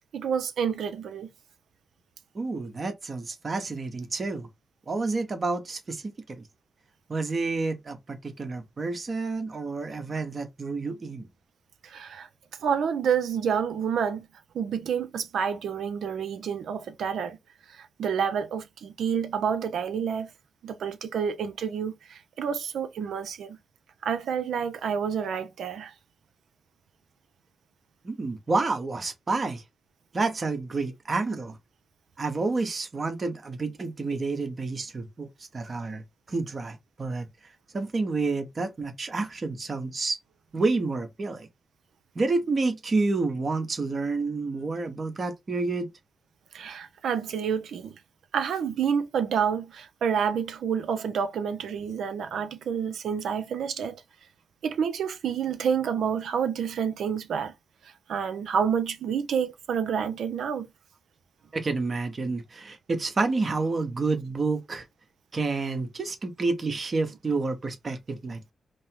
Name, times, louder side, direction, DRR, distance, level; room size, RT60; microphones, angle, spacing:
voice 1, 0.1-1.3 11.8-12.3 12.6-14.3 14.5-17.4 18.0-20.3 20.6-23.6 24.0-25.9 46.5-48.0 48.3-54.0 54.6-57.5 58.1-60.7, right 7 dB, 85° right, 0.6 m, -28 dB
voice 2, 2.3-4.5 4.9-6.0 6.3-6.4 7.1-11.3 28.0-29.6 30.1-31.6 32.2-35.3 35.5-36.0 36.3-37.3 37.7-40.2 40.5-41.5 42.1-45.9 61.5-64.8 65.3-68.5, right 3 dB, 50° right, 1.1 m, -29 dB
5.2 x 2.0 x 3.6 m
cardioid pair, 60°, 0 cm